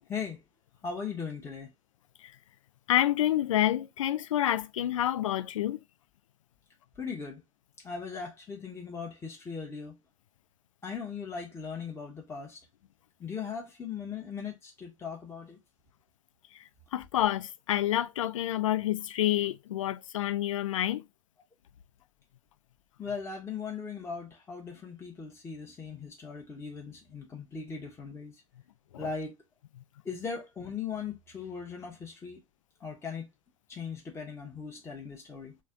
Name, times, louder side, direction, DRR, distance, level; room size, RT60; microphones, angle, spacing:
voice 1, 0.1-0.4 0.8-1.7 7.0-7.4 7.8-10.0 10.8-12.6 13.2-15.6 23.0-28.4 29.0-29.4 30.0-32.4 32.8-33.3 33.7-35.6, left 5 dB, 15° left, 0.8 m, -39 dB
voice 2, 2.9-5.8 16.5-16.6 16.9-21.0 28.9-29.1, left 12 dB, 70° left, 0.4 m, -28 dB
3.2 x 2.1 x 3.6 m
figure-of-eight pair, 85°, 17 cm